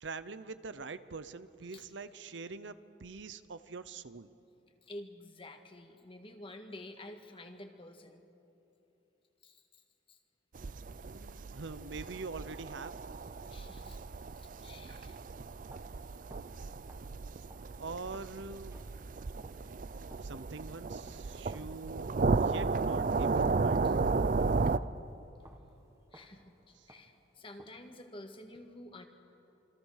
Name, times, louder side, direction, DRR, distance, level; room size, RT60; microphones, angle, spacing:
voice 1, 0.0-4.3 11.0-13.0 17.3-17.4 17.8-18.8 20.2-22.1 22.4-24.0, right 4 dB, 70° right, 13 dB, 0.8 m, -44 dB
voice 2, 4.8-8.2 9.4-9.8 10.1-10.2 13.5-14.0 14.4-15.2 23.8-23.9 26.1-29.1, left 1 dB, 30° left, 5 dB, 1.7 m, -50 dB
sound 1, 10.5-24.8, right 4 dB, 45° right, 0.5 m, -34 dB
sound 2, 15.7-27.9, right 1 dB, 15° right, 1.7 m, -60 dB
27.5 x 24.5 x 6.6 m, 2.9 s
head